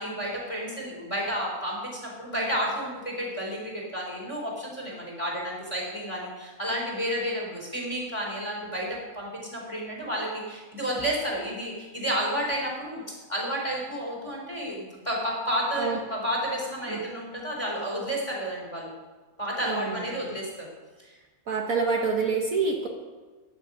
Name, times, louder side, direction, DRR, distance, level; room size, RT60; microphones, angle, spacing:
voice 1, 0.0-13.0 13.3-18.9 19.4-20.7 21.0-21.2, equal, 20° left, -1 dB, 4.1 m, -31 dB
voice 2, 19.6-20.2 21.5-22.9, right 4 dB, 55° right, 1 dB, 1.5 m, -27 dB
14.0 x 9.8 x 5.6 m, 1.3 s
omnidirectional pair, 1.8 m